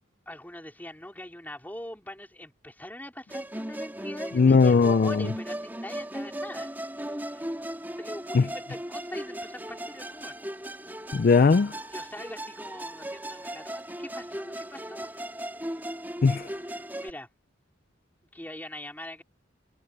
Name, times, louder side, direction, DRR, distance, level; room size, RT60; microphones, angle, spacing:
voice 1, 0.3-6.7 7.0-7.4 7.8-10.3 11.9-15.1 16.8-17.3 18.3-19.2, left 1 dB, 10° left, 4.5 m, -42 dB
Musical instrument, 3.3-17.1, right 1 dB, 10° right, 2.8 m, -37 dB
voice 2, 4.3-5.3 8.3-8.5 11.1-11.8 16.2-16.6, left 4 dB, 45° left, 0.4 m, -19 dB
head